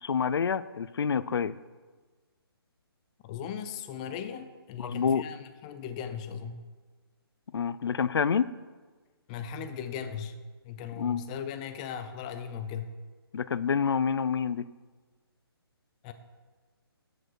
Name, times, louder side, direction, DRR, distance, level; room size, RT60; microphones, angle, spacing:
voice 1, 0.0-1.5 4.8-5.2 7.5-8.5 11.0-11.2 13.3-14.7, left 6 dB, 70° left, 17 dB, 0.5 m, -27 dB
voice 2, 3.2-6.6 9.3-10.3 10.6-12.9 16.0-16.1, left 7 dB, 15° left, 9 dB, 0.5 m, -38 dB
13.0 x 7.4 x 4.6 m, 1.4 s
hypercardioid pair, 160°, 13 cm